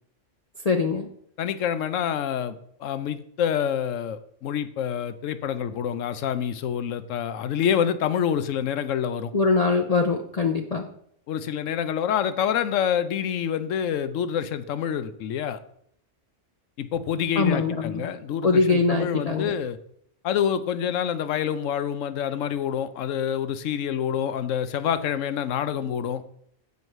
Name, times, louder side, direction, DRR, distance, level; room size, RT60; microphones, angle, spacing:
voice 1, 0.6-1.1 9.3-10.9 17.4-18.1 18.4-19.5, left 4 dB, 40° left, 3 dB, 0.6 m, -23 dB
voice 2, 1.4-9.3 11.3-15.6 16.8-19.8 20.2-26.2, left 8 dB, 85° left, 12 dB, 1.0 m, -27 dB
8.1 x 4.6 x 6.6 m, 0.68 s
omnidirectional pair, 1.3 m